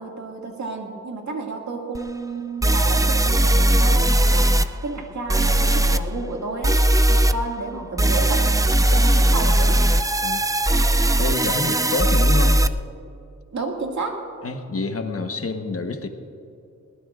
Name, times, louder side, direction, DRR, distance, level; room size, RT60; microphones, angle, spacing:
voice 1, 0.0-4.5 4.8-6.8 7.1-8.5 8.8-9.8 13.5-14.2, right 3 dB, 70° right, 0 dB, 2.1 m, -31 dB
sound 1, 1.9-2.0 2.6-4.7 5.3-6.0 6.6-7.3 8.0-12.7, right 1 dB, 10° right, 0.4 m, -18 dB
voice 2, 11.2-12.6 14.4-16.1, left 3 dB, 50° left, 5 dB, 1.2 m, -27 dB
21.0 x 19.0 x 2.5 m, 2.6 s
wide cardioid pair, 135°, 29 cm